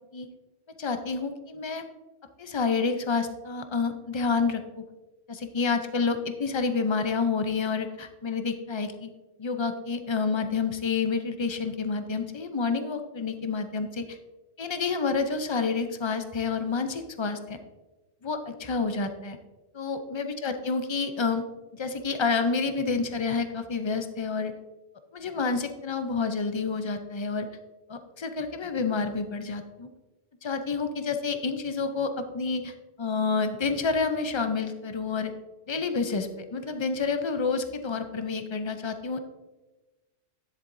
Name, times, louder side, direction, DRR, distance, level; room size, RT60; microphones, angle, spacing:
voice 1, 0.8-1.9 2.4-4.8 5.3-9.1 9.4-14.2 14.6-17.6 18.2-19.4 19.7-21.4 21.7-24.5 25.1-27.5 27.9-29.9 30.4-35.3 35.7-39.2, left 4 dB, 40° left, 8 dB, 0.4 m, -29 dB
10.5 x 7.7 x 2.6 m, 1.1 s
omnidirectional pair, 1.3 m